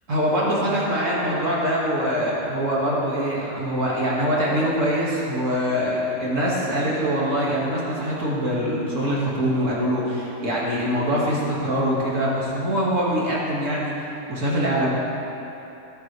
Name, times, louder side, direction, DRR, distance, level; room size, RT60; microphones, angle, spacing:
voice 1, 0.1-14.9, equal, 60° right, -5 dB, 2.4 m, -23 dB
20.0 x 8.2 x 3.3 m, 3.0 s
omnidirectional pair, 1.5 m